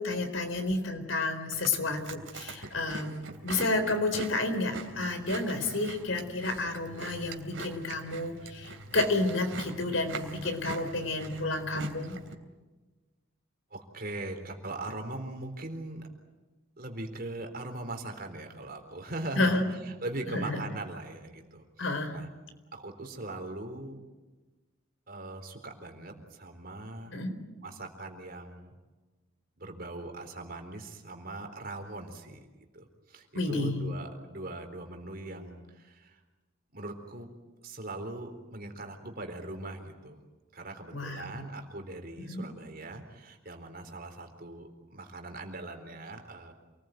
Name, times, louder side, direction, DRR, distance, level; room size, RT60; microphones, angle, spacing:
voice 1, 0.0-3.1 3.4-12.2 19.4-19.7 20.3-20.6 21.8-22.2 27.1-27.4 33.3-33.8 40.9-41.4 42.2-42.5, left 2 dB, 75° left, 8 dB, 4.2 m, -30 dB
Chewing mastication, 1.5-12.3, right 3 dB, 70° right, 3.1 m, -42 dB
voice 2, 13.7-16.1 16.8-22.3 22.7-24.0 25.1-27.2 27.6-28.7 29.6-32.5 32.7-36.2 36.7-37.3 37.6-40.2 40.5-46.5, right 2 dB, 45° right, 5 dB, 4.0 m, -40 dB
28.0 x 20.5 x 9.3 m, 1.2 s
head